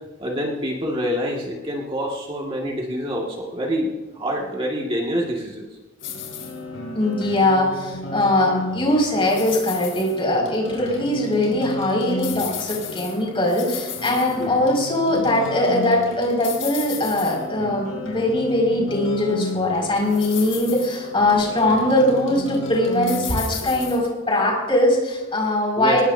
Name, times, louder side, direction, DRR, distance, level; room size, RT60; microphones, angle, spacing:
voice 1, 0.2-5.7 14.4-14.5 25.8-26.0, equal, 30° right, -2 dB, 1.9 m, -26 dB
sound 1, 6.0-24.0, left 3 dB, 70° left, 4.5 m, -33 dB
voice 2, 6.9-26.0, left 1 dB, 25° left, -1 dB, 5.5 m, -21 dB
23.0 x 19.5 x 2.7 m, 1.2 s
head